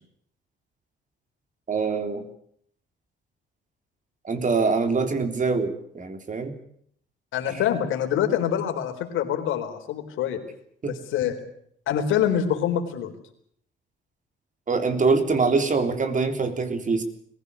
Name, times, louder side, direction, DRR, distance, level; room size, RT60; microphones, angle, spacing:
voice 1, 1.7-2.3 4.2-6.6 7.5-7.6 10.8-10.9 14.7-17.0, right 4 dB, 40° right, 8 dB, 3.6 m, -24 dB
voice 2, 7.3-10.4 10.8-11.4 11.9-13.1, left 9 dB, 90° left, 5 dB, 4.1 m, -25 dB
22.0 x 16.0 x 9.8 m, 0.66 s
cardioid pair, 90°, 20 cm